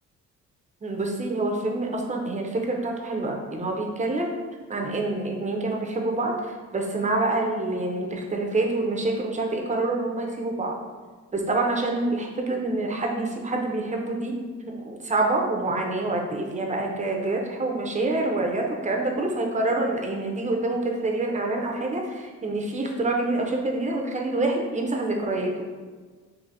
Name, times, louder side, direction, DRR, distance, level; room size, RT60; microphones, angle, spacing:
voice 1, 0.8-4.3 4.7-6.4 6.7-10.8 11.3-14.3 14.8-25.5, right 2 dB, 25° right, 1 dB, 0.6 m, -26 dB
4.1 x 2.7 x 2.6 m, 1.4 s
cardioid pair, 90°, 30 cm